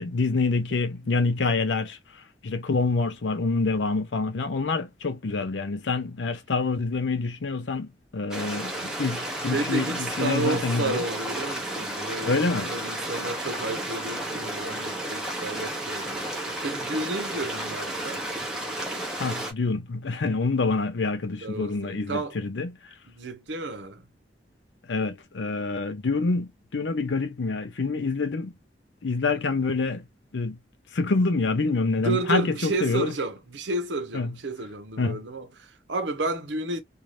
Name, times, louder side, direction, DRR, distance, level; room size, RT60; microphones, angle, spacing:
voice 1, 0.0-2.0 2.4-9.9 10.2-11.0 12.2-12.7 19.2-22.7 24.9-28.5 29.0-30.0 30.3-30.6 30.9-33.1 34.1-34.4 35.0-35.2, left 3 dB, 90° left, 0.6 m, -26 dB
Stream, 8.3-19.5, right 1 dB, 5° right, 0.7 m, -32 dB
voice 2, 9.5-16.3 16.6-18.2 21.4-22.4 23.1-24.0 32.0-36.8, right 2 dB, 90° right, 0.8 m, -31 dB
2.7 x 2.3 x 3.2 m
head